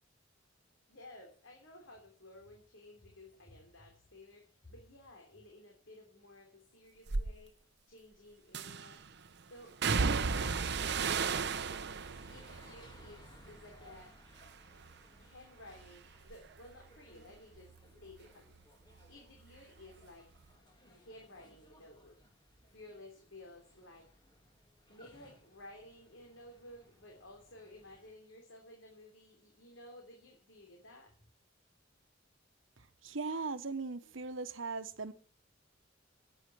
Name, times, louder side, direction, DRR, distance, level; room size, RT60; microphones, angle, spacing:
voice 1, 0.9-7.5 7.9-9.0 9.5-9.7 10.3-11.0 12.3-14.1 15.2-17.7 18.0-18.5 18.9-20.3 21.0-22.2 22.7-24.1 24.9-31.1, left 1 dB, 80° left, 3.3 m, -55 dB
sound 1, 7.1-7.3 8.5-9.0 9.8-14.0 14.4-15.0 15.4-18.6 18.9-20.0 20.3-20.5, right 5 dB, 60° right, 0.8 m, -36 dB
sound 2, 10.2-28.1, left 1 dB, 25° left, 3.0 m, -61 dB
voice 2, 33.0-35.1, right 4 dB, 80° right, 1.1 m, -38 dB
10.5 x 9.8 x 7.7 m
head